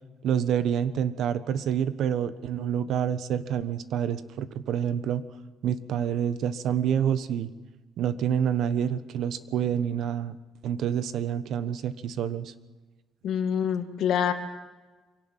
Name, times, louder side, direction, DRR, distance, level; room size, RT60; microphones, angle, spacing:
voice 1, 0.2-5.2 5.6-7.5 8.0-10.4 10.6-12.5, right 9 dB, 60° right, 13 dB, 1.2 m, -27 dB
voice 2, 13.2-14.3, left 8 dB, 60° left, 7 dB, 2.2 m, -26 dB
24.0 x 17.5 x 7.4 m, 1.3 s
cardioid pair, 165°, 0 cm